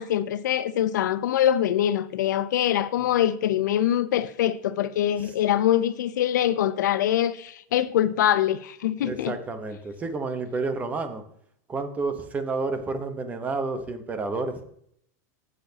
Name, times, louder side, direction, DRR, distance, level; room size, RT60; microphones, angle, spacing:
voice 1, 0.0-9.3, left 11 dB, 80° left, 0.7 m, -24 dB
voice 2, 9.0-11.2 11.7-14.6, right 3 dB, 15° right, 1.0 m, -30 dB
16.5 x 6.8 x 2.9 m
supercardioid pair, 150°, 10 cm